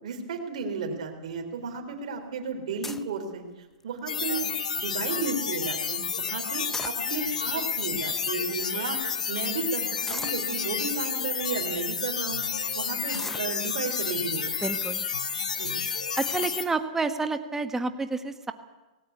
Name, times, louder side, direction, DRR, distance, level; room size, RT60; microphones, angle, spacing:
voice 1, 0.0-3.4 3.8-12.4 12.7-14.5 15.6-15.7, right 4 dB, 65° right, 4 dB, 3.8 m, -33 dB
sound 1, 2.8-3.2 3.8-4.1 4.5-4.6 4.9-5.2 6.5-7.4 8.1-8.2 8.4-8.6 10.1-10.5 11.2-11.3 11.8-12.0 13.1-14.0 14.7-15.1 15.5-15.6 16.2-16.5, left 3 dB, 5° left, 0.6 m, -40 dB
sound 2, 4.1-16.7, left 6 dB, 85° left, 1.8 m, -30 dB
voice 2, 14.6-15.0 16.2-18.5, right 3 dB, 10° right, 9 dB, 1.5 m, -29 dB
18.5 x 18.0 x 8.2 m, 1.1 s
hypercardioid pair, 120°, 4 cm